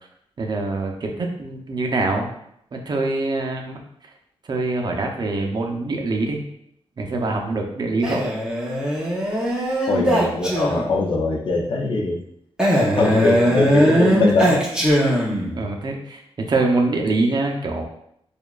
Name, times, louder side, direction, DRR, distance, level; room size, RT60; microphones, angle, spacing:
voice 1, 0.4-1.1 1.4-2.3 2.7-3.8 4.5-6.4 7.0-8.2 15.5-16.2 16.5-17.8, right 2 dB, 45° right, 2 dB, 0.6 m, -24 dB
Male speech man speaking, 8.0-11.0 12.6-15.6, equal, 10° right, 0.8 m, -20 dB
voice 2, 9.9-12.2 13.0-14.7, left 3 dB, 55° left, 1 dB, 0.6 m, -22 dB
6.8 x 2.4 x 2.4 m, 0.72 s
wide cardioid pair, 155°, 10 cm